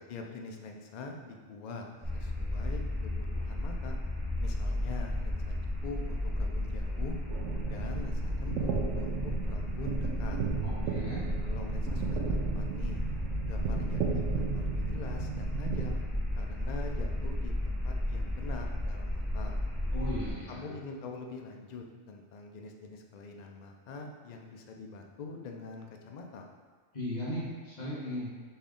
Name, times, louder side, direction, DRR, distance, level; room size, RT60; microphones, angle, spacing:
voice 1, 0.1-1.8 2.1-4.0 4.4-5.5 5.8-7.2 7.6-10.4 11.4-13.0 13.4-16.0 16.4-19.6 20.5-26.4, left 3 dB, 70° left, 2 dB, 0.4 m, -44 dB
sound 1, 2.0-20.3, left 1 dB, ahead, 0.6 m, -33 dB
sound 2, 7.3-16.0, right 7 dB, 80° right, 0.9 m, -36 dB
voice 2, 10.6-11.2 19.9-20.7 26.9-28.3, equal, 35° left, -8 dB, 1.4 m, -37 dB
4.2 x 3.4 x 3.7 m, 1.5 s
omnidirectional pair, 1.4 m